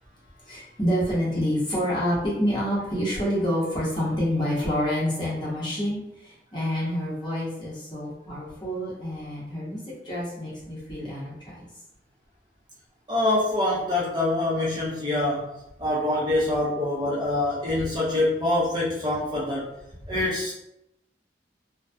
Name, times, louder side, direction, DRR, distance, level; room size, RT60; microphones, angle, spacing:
voice 1, 0.5-9.8 10.0-11.6, equal, 25° left, -7 dB, 0.9 m, -27 dB
voice 2, 13.1-15.5 15.8-19.7 20.1-20.5, left 2 dB, 25° right, -6 dB, 0.5 m, -25 dB
2.5 x 2.2 x 2.3 m, 0.83 s
head